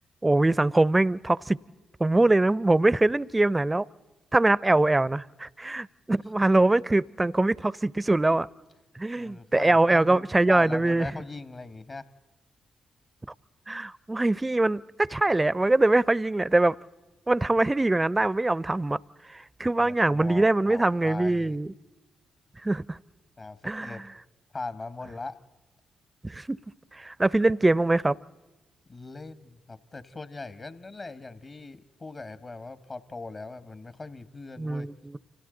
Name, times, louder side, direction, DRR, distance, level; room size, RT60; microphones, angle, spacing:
voice 1, 0.2-1.6 2.0-3.9 4.3-8.5 9.0-11.1 13.7-16.8 17.3-19.0 19.3-21.7 22.6-23.0 23.6-24.0 26.2-26.6 26.9-28.2 34.6-35.2, right 2 dB, 20° right, 0.6 m, -23 dB
voice 2, 9.1-12.1 19.8-21.6 23.4-24.1 24.5-25.4 28.9-34.9, left 3 dB, 45° left, 1.3 m, -40 dB
29.5 x 26.0 x 3.9 m
hypercardioid pair, 45°, 0 cm